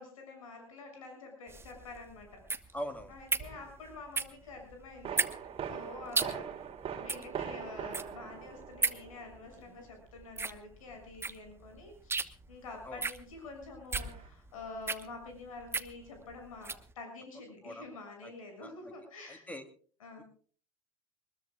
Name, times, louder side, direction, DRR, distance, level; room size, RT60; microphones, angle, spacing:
voice 1, 0.0-2.4 2.7-2.8 3.1-6.4 6.9-19.5 20.0-20.2, left 3 dB, 75° left, 4 dB, 6.6 m, -48 dB
sound 1, 1.5-16.9, right 4 dB, 15° right, 1.1 m, -37 dB
voice 2, 2.7-3.1 6.2-6.3 12.9-13.0 17.6-17.8 18.2-18.3 18.6-18.7 19.3-19.6, equal, 10° left, 8 dB, 2.8 m, -41 dB
sound 2, 3.4-3.7 5.0-9.5 13.9-14.3, right 7 dB, 35° right, 3.2 m, -41 dB
23.0 x 21.0 x 2.3 m, 0.43 s
hypercardioid pair, 85°, 17 cm